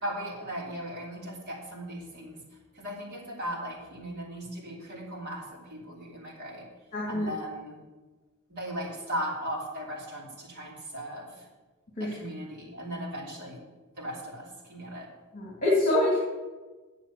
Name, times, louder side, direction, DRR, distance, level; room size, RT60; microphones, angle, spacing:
voice 1, 0.0-2.4 2.7-6.7 7.1-7.8 8.5-11.5 12.0-13.6 14.0-15.1, equal, 50° right, -4 dB, 3.2 m, -37 dB
voice 2, 6.9-7.3 12.0-12.1 15.3-16.2, left 1 dB, 40° left, -5 dB, 2.7 m, -25 dB
9.0 x 7.1 x 7.2 m, 1.2 s
head